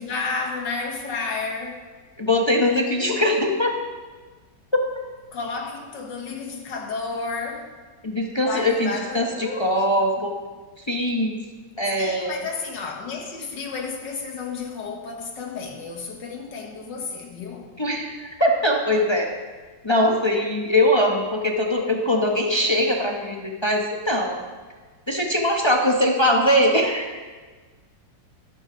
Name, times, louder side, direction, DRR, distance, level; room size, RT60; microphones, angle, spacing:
voice 1, 0.0-1.9 5.3-7.7 8.4-9.9 10.2-10.3 12.0-17.7, left 4 dB, 70° left, 1.9 m, -32 dB
voice 2, 2.2-3.7 8.0-10.4 10.9-11.3 11.8-12.4 17.8-19.3 19.8-24.4 25.1-27.2, left 1 dB, 20° left, 0.7 m, -21 dB
12.5 x 12.5 x 3.8 m
omnidirectional pair, 2.0 m